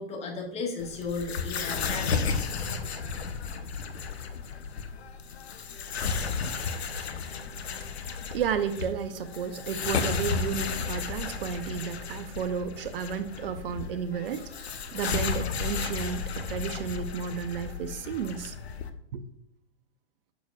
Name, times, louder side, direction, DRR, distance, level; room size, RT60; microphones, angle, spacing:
voice 1, 0.0-2.1, left 4 dB, 20° left, 0 dB, 1.5 m, -34 dB
sound 1, 0.8-18.9, left 5 dB, 80° left, 0.8 m, -33 dB
voice 2, 8.3-18.6 19.1-19.2, right 7 dB, 65° right, 11 dB, 0.7 m, -32 dB
7.1 x 6.2 x 2.3 m, 0.79 s
hypercardioid pair, 115°, 31 cm